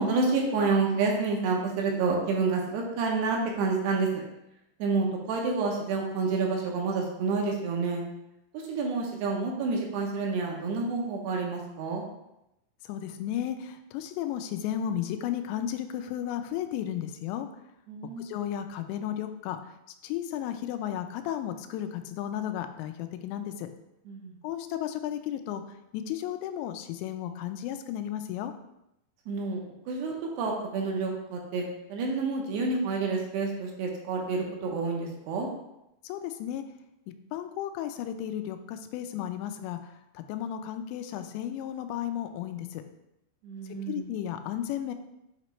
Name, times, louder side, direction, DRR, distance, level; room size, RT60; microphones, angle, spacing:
voice 1, 0.0-4.1 4.8-8.0 8.7-12.0 17.9-18.3 24.1-24.4 29.3-29.6 29.9-31.6 31.9-35.5 43.4-44.1, right 4 dB, 75° right, 0 dB, 2.8 m, -29 dB
voice 2, 12.9-17.5 18.2-19.6 20.0-23.7 24.4-25.6 25.9-28.5 36.0-36.6 37.3-39.8 40.2-42.8 43.9-44.9, left 10 dB, 90° left, 8 dB, 2.8 m, -34 dB
8.1 x 3.0 x 4.3 m, 0.86 s
omnidirectional pair, 5.1 m